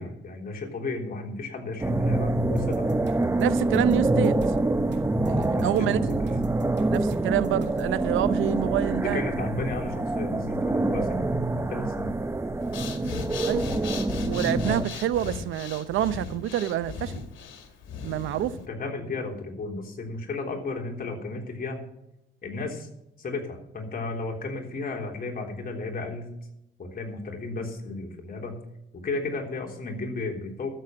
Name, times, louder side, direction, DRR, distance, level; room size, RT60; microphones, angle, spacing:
voice 1, 0.0-2.9 5.5-6.0 6.3-6.4 9.0-12.1 18.7-21.8 22.4-22.9 23.2-26.3 26.8-28.5 28.9-30.7, left 3 dB, 45° left, 3.6 m, -34 dB
sound 1, 1.8-14.8, right 2 dB, 15° right, 0.7 m, -26 dB
sound 2, 2.6-7.9, right 5 dB, 60° right, 2.7 m, -45 dB
voice 2, 3.4-4.4 5.2-6.1 6.9-9.2 13.5-13.6 14.2-17.2 18.0-18.5, right 12 dB, 85° right, 0.7 m, -27 dB
Breathing, 12.6-18.7, left 5 dB, 75° left, 2.3 m, -37 dB
13.5 x 7.7 x 7.6 m
cardioid pair, 90°, 20 cm